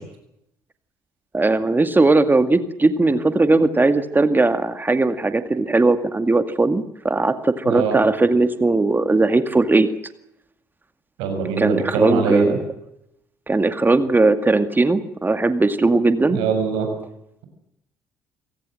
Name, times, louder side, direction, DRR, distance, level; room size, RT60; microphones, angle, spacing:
voice 1, 1.3-9.9 11.6-12.6 13.5-16.4, right 3 dB, 20° right, 10 dB, 2.1 m, -18 dB
voice 2, 7.7-8.0 11.2-12.6 16.3-16.9, right 5 dB, 75° right, 5 dB, 6.7 m, -22 dB
28.0 x 17.5 x 7.8 m, 0.81 s
hypercardioid pair, 50°, 9 cm